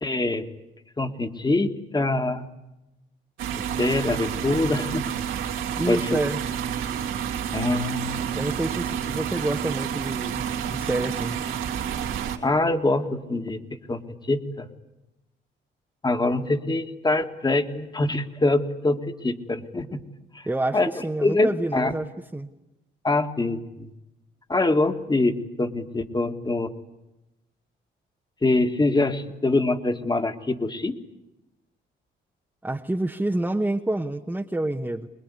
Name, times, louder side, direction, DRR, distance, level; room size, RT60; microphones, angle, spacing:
voice 1, 0.0-0.4 1.0-2.5 3.6-5.1 5.9-6.2 7.5-8.3 12.4-13.6 13.9-14.7 16.0-20.0 20.3-20.5 20.7-21.9 23.0-23.9 24.5-26.7 28.4-30.9, left 2 dB, 20° left, 8 dB, 1.9 m, -24 dB
sound 1, 3.4-12.4, right 8 dB, 90° right, 3.0 m, -29 dB
voice 2, 5.8-6.4 8.3-11.4 20.4-22.5 32.6-35.1, right 1 dB, 10° right, 3 dB, 1.1 m, -28 dB
24.0 x 21.0 x 9.9 m, 0.96 s
cardioid pair, 90°, 20 cm